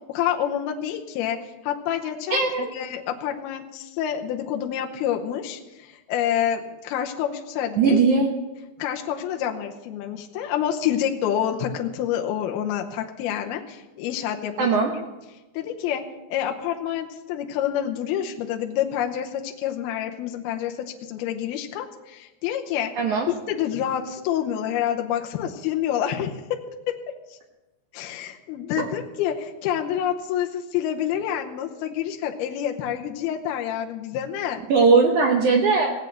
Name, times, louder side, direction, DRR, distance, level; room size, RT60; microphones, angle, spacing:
voice 1, 0.1-8.0 8.8-14.8 15.5-22.9 23.3-26.7 27.3-27.4 27.9-34.6, left 10 dB, 75° left, 2 dB, 2.7 m, -28 dB
voice 2, 2.3-2.7 7.8-8.3 14.6-14.9 23.0-23.3 28.8-28.9 34.7-35.9, right 4 dB, 70° right, 2 dB, 1.9 m, -19 dB
17.5 x 8.2 x 6.5 m, 1.1 s
omnidirectional pair, 4.8 m